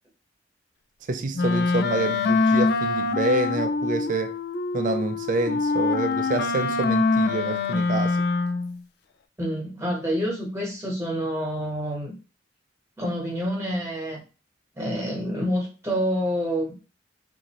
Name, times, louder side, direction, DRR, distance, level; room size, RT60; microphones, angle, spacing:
voice 1, 1.1-4.4 4.7-8.2, right 3 dB, 45° right, 0.4 m, -27 dB
Wind instrument woodwind instrument, 1.3-8.8, left 3 dB, 55° left, 0.3 m, -24 dB
voice 2, 9.4-12.1 13.0-14.2 14.7-16.8, equal, 15° right, 1.2 m, -27 dB
3.9 x 2.6 x 2.9 m
head